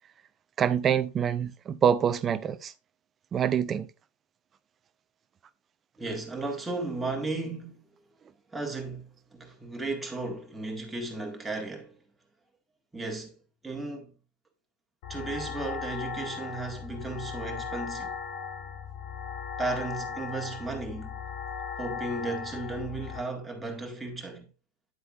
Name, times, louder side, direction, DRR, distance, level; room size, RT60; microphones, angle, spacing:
voice 1, 0.6-2.7 3.3-3.9, right 8 dB, 25° right, 0.5 m, -25 dB
voice 2, 6.0-7.8 8.5-12.0 12.9-13.4 13.6-14.1 15.1-18.2 19.6-21.2 21.8-24.5, right 3 dB, 5° right, 1.9 m, -35 dB
sound 1, 15.0-23.2, left 6 dB, 45° left, 1.4 m, -37 dB
9.5 x 7.8 x 2.5 m
figure-of-eight pair, 90°, 0 cm